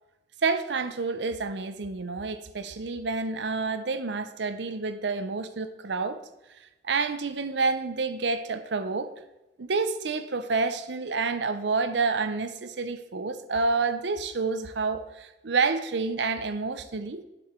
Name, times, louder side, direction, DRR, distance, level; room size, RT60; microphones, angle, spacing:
voice 1, 0.4-6.2 6.8-9.1 9.6-17.2, right 4 dB, 75° right, 0.6 m, -29 dB
8.5 x 7.7 x 4.4 m
head